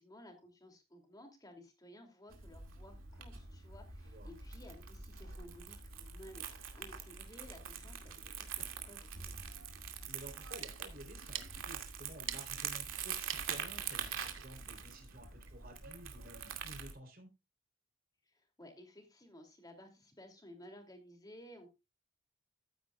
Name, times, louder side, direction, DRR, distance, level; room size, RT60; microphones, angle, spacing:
voice 1, 0.0-6.5 6.7-9.4 18.3-21.7, left 1 dB, 20° left, 4 dB, 2.9 m, -56 dB
Crumpling crinkling, 2.3-16.9, right 7 dB, 85° right, 2.4 m, -44 dB
voice 2, 10.1-17.3, right 1 dB, 45° right, 3 dB, 3.8 m, -53 dB
sound 1, 10.4-15.6, right 11 dB, 70° right, 1.1 m, -49 dB
14.0 x 9.3 x 2.4 m, 0.25 s
head